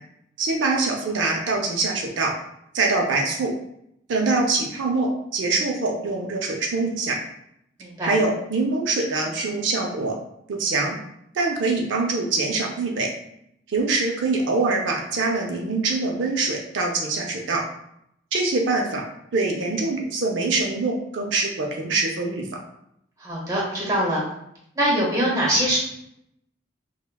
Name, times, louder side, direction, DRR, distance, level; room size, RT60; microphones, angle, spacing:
voice 1, 0.4-2.3 2.7-3.5 4.1-7.2 8.0-10.2 10.5-11.0 11.3-13.1 13.7-17.6 18.3-19.0 19.3-22.5, right 3 dB, 70° right, 0 dB, 0.5 m, -24 dB
voice 2, 7.8-8.2 23.2-24.2 24.7-25.8, equal, 15° right, -4 dB, 1.0 m, -23 dB
5.4 x 2.1 x 2.2 m, 0.77 s
head